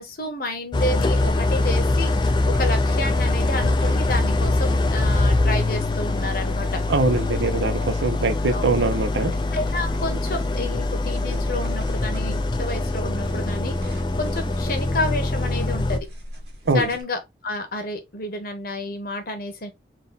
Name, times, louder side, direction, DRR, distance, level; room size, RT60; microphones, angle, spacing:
voice 1, 0.0-6.8 8.5-8.6 9.5-16.1 16.7-19.7, left 2 dB, 50° left, 1.1 m, -30 dB
Idling, 0.7-16.0, left 2 dB, 25° left, 0.4 m, -23 dB
sound 1, 1.0-17.0, equal, 60° right, 1.8 m, -41 dB
voice 2, 6.9-9.3 16.7-16.9, right 3 dB, 75° right, 0.7 m, -22 dB
3.8 x 2.7 x 3.9 m
head